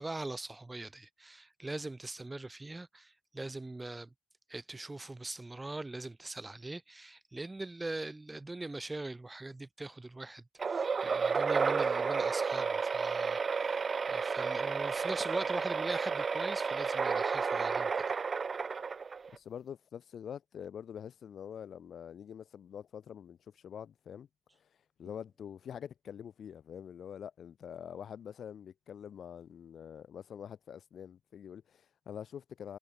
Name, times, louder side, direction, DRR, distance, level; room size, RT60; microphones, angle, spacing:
voice 1, 0.0-4.1 4.5-13.8 14.0-17.9, right 2 dB, 15° right, 6.3 m, -41 dB
sound 1, 10.6-19.4, right 5 dB, 40° right, 0.8 m, -32 dB
voice 2, 19.3-24.3 24.6-24.7 25.0-32.8, left 8 dB, 60° left, 3.2 m, -45 dB
cardioid pair, 90°, 0 cm